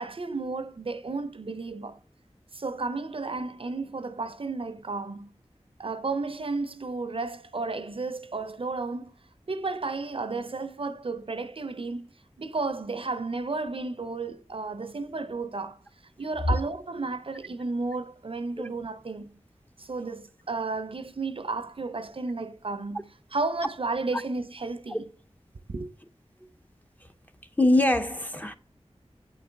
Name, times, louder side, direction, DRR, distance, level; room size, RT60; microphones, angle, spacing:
voice 1, 0.0-2.0 2.5-5.3 5.8-9.1 9.5-12.1 12.4-15.8 16.2-19.4 19.8-23.0 23.3-25.0 25.7-25.9, right 3 dB, 55° right, 0.5 m, -33 dB
voice 2, 27.6-28.5, left 1 dB, 15° left, 0.5 m, -22 dB
8.5 x 3.9 x 3.3 m
wide cardioid pair, 60°, 11 cm